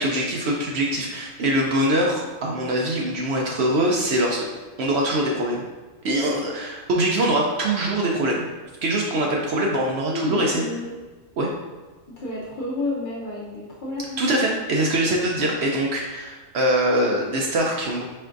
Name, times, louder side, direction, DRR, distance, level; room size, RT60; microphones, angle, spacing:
voice 1, 0.0-4.4 4.8-5.7 6.0-8.5 8.8-10.6 11.4-11.5 14.2-18.1, right 1 dB, 65° right, -1 dB, 0.7 m, -23 dB
voice 2, 10.1-10.9 12.2-14.2, left 2 dB, 50° left, -5 dB, 0.7 m, -30 dB
4.4 x 3.5 x 2.5 m, 1.3 s
omnidirectional pair, 1.4 m